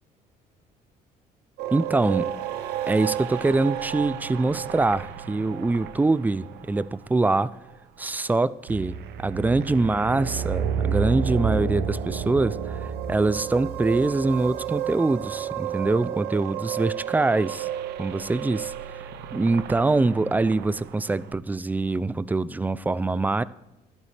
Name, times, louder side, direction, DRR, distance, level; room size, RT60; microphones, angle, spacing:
sound 1, 1.6-8.3 8.7-21.3, right 8 dB, 80° right, 0.8 m, -32 dB
voice 1, 1.7-2.3 2.9-7.5 8.0-8.9 9.2-17.7 18.0-18.7 19.3-23.4, right 3 dB, 10° right, 18 dB, 0.3 m, -24 dB
12.5 x 11.5 x 3.3 m, 0.99 s
cardioid pair, 110°, 17 cm